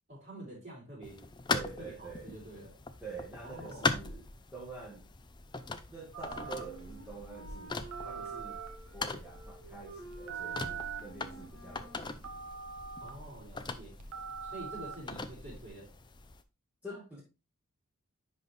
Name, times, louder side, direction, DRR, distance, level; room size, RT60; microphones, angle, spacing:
voice 1, 0.1-1.3 1.8-2.7 3.4-4.0 13.0-13.9 14.4-15.9 16.8-17.0, right 1 dB, 35° right, 4.8 m, -47 dB
sound 1, 1.0-16.4, left 4 dB, 20° left, 0.5 m, -41 dB
voice 2, 1.5-2.3 3.0-4.2 4.5-5.1 5.9-7.8 8.0-8.6 8.9-12.2 16.8-17.2, right 3 dB, 5° right, 1.5 m, -46 dB
Telephone, 6.1-15.7, right 6 dB, 80° right, 1.3 m, -44 dB
Wind instrument woodwind instrument, 6.2-12.1, right 2 dB, 65° right, 2.8 m, -50 dB
10.5 x 4.1 x 3.3 m
head